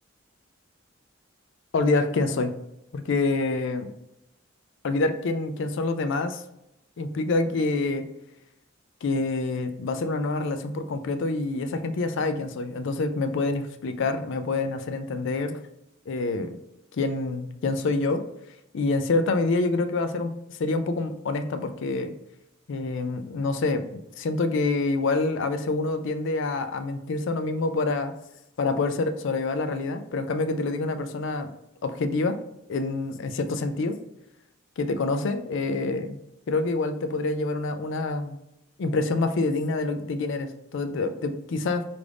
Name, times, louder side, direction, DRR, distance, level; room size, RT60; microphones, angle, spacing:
voice 1, 1.7-2.5 2.9-3.9 4.8-6.4 7.0-8.0 9.0-15.6 16.1-16.5 17.0-18.2 18.7-20.3 20.6-22.1 22.7-28.1 28.6-31.5 31.8-32.4 32.7-34.0 34.8-36.2 36.5-38.4 38.8-41.8, left 3 dB, 65° left, 9 dB, 0.4 m, -26 dB
4.8 x 2.6 x 3.3 m, 0.85 s
head